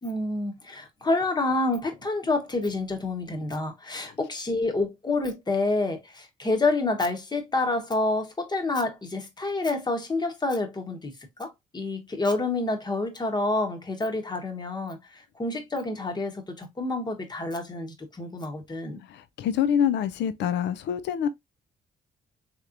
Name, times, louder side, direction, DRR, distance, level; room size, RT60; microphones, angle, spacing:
voice 1, 0.0-19.0, left 2 dB, 25° left, 1.1 m, -28 dB
voice 2, 19.1-21.3, left 9 dB, 80° left, 0.4 m, -26 dB
3.3 x 3.0 x 2.4 m
cardioid pair, 75°, 18 cm